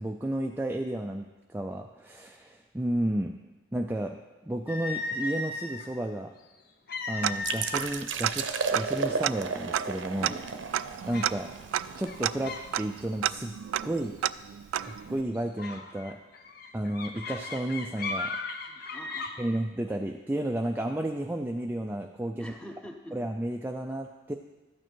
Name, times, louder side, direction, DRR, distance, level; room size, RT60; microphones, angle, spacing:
voice 1, 0.0-6.3 7.1-10.3 11.0-11.5 12.0-13.6 13.8-14.2 14.8-16.2 16.7-18.4 19.4-22.5 23.1-24.3, right 1 dB, 10° right, 3 dB, 0.4 m, -32 dB
sound 1, 4.7-5.9 6.9-8.0 8.4-8.6 9.3-9.4 9.9-10.3 11.1-11.4 12.0-12.7 13.0-13.3 14.8-15.0 15.6-19.3, left 3 dB, 50° left, 0.9 m, -36 dB
Tick-tock, 7.2-8.0 8.2-8.3 8.7-15.2, right 11 dB, 90° right, 0.3 m, -32 dB
sound 2, 7.4-13.0, right 4 dB, 70° right, 0.8 m, -34 dB
voice 2, 10.2-10.6 18.7-19.5 22.3-23.2, equal, 5° left, 3 dB, 0.9 m, -46 dB
13.0 x 9.1 x 4.5 m, 1.2 s
head